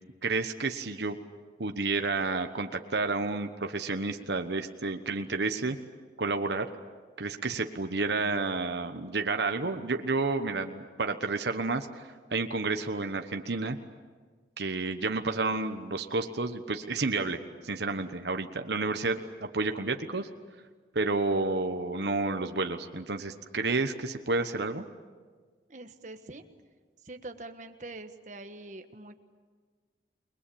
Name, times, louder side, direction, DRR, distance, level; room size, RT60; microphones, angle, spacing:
voice 1, 0.2-1.2 1.6-5.8 6.2-6.7 7.2-13.8 14.6-20.3 20.9-24.8, right 3 dB, 80° right, 7 dB, 1.2 m, -30 dB
voice 2, 25.7-26.4 27.0-29.2, right 2 dB, 45° right, 7 dB, 1.5 m, -44 dB
29.0 x 21.0 x 8.6 m, 1.5 s
head